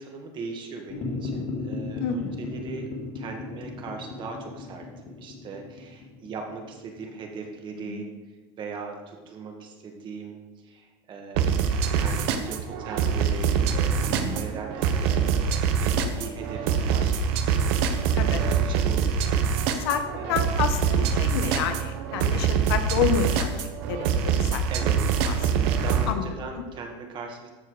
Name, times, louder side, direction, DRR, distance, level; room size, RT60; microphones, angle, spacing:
voice 1, 0.0-8.1 8.6-19.9 20.2-20.4 24.7-25.1 25.4-27.5, right 4 dB, 40° right, 2 dB, 1.8 m, -39 dB
sound 1, 0.9-7.5, left 3 dB, 50° left, 2.8 m, -36 dB
voice 2, 2.0-2.3 7.8-8.2 14.1-14.4 18.2-18.4 19.8-20.0 20.3-23.6 23.9-24.6 25.3-25.4 26.1-26.3, left 8 dB, 85° left, 8 dB, 1.0 m, -29 dB
sound 2, 11.4-26.1, right 7 dB, 75° right, 1.0 m, -24 dB
14.0 x 4.8 x 4.8 m, 1.3 s
supercardioid pair, 130°, 13 cm